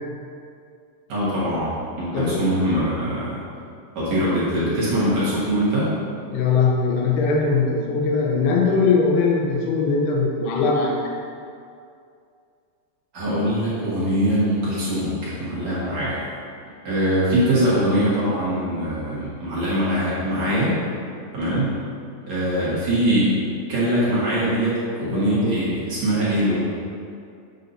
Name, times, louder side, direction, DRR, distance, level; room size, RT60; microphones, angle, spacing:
voice 1, 1.1-1.7 2.0-3.4 3.9-5.9 13.1-16.2 16.8-20.8 21.3-21.8 22.3-23.4 23.7-26.6, right 1 dB, 55° right, -10 dB, 2.2 m, -22 dB
voice 2, 6.3-11.0 25.1-25.6, left 4 dB, 85° left, -1 dB, 2.8 m, -21 dB
8.3 x 6.5 x 2.7 m, 2.4 s
omnidirectional pair, 4.7 m